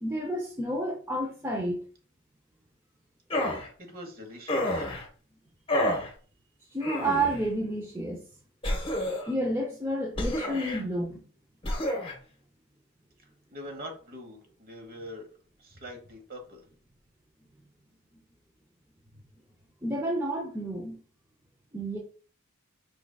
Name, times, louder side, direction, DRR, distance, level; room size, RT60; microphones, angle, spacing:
voice 1, 0.0-1.8 6.7-8.2 9.3-11.2 19.8-21.0 21.7-22.0, right 1 dB, 10° right, -1 dB, 0.6 m, -30 dB
sound 1, 3.3-3.7 4.5-5.0 5.7-6.1 6.8-7.4 8.6-9.3 10.2-10.8 11.6-12.1, left 1 dB, 25° left, 1.0 m, -29 dB
voice 2, 3.8-4.8 13.5-15.3 15.6-16.6, equal, 45° right, 4 dB, 1.1 m, -43 dB
5.0 x 3.8 x 2.3 m, 0.40 s
head